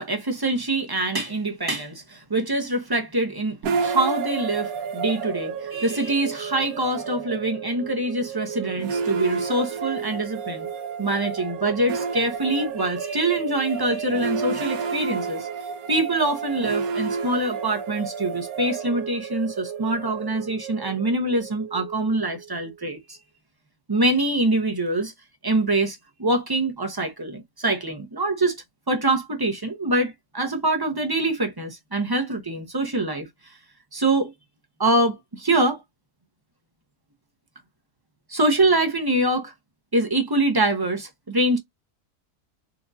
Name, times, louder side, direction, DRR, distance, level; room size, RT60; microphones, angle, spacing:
voice 1, 0.0-10.7 11.0-15.5 15.9-23.2 23.9-25.1 25.4-28.6 28.9-33.3 33.9-34.3 34.8-35.8 38.3-39.5 39.9-41.6, right 2 dB, 30° right, 0.4 m, -24 dB
sound 1, 3.6-22.8, right 5 dB, 70° right, 1.1 m, -31 dB
4.4 x 2.4 x 2.5 m
omnidirectional pair, 1.7 m